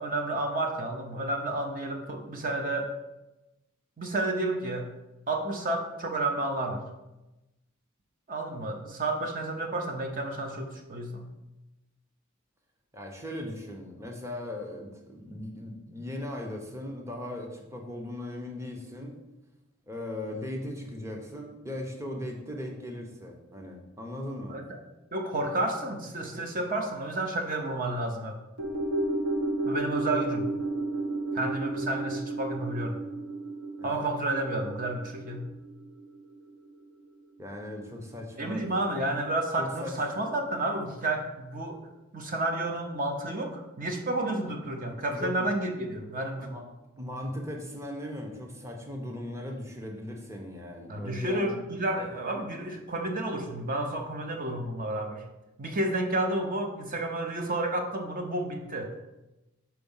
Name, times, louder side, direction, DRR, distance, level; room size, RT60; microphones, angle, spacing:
voice 1, 0.0-2.9 4.0-4.9 5.3-6.8 8.3-11.3 24.5-24.7 25.1-28.4 29.7-30.4 31.3-33.0 33.8-35.4 38.4-41.8 42.1-46.5 50.9-55.2 55.6-58.9, right 2 dB, 40° right, 3 dB, 0.8 m, -31 dB
voice 2, 12.9-19.2 19.9-24.6 31.4-31.5 33.8-33.9 37.4-38.7 39.6-40.0 45.1-45.5 46.4-46.6 47.0-51.5, left 1 dB, 15° right, 2 dB, 0.8 m, -38 dB
sound 1, 28.6-37.0 37.3-37.4, right 2 dB, 90° right, 1.0 m, -32 dB
5.9 x 4.4 x 5.5 m, 0.99 s
head